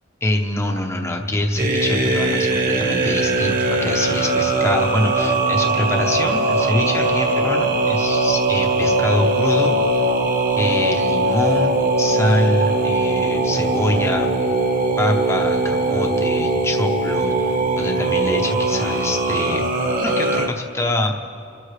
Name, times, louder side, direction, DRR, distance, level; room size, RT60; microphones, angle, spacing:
voice 1, 0.2-9.8 10.6-14.3 15.0-19.6 20.0-21.1, left 1 dB, 15° left, 2 dB, 0.8 m, -24 dB
sound 1, 1.6-20.5, right 2 dB, 45° right, 1.5 m, -20 dB
27.5 x 13.0 x 3.2 m, 2.4 s
head